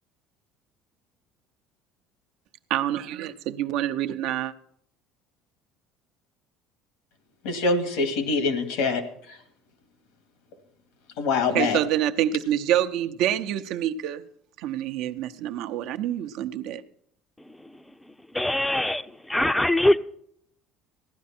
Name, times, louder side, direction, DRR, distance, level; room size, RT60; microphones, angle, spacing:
voice 1, 2.7-4.5 11.5-14.2 14.6-16.8, right 11 dB, 70° right, 0.8 m, -27 dB
voice 2, 7.4-9.0 9.3-9.4 11.2-11.8, left 3 dB, 85° left, 2.2 m, -24 dB
voice 3, 18.3-20.0, left 1 dB, 5° left, 0.6 m, -22 dB
15.5 x 11.5 x 4.3 m
cardioid pair, 125°, 0 cm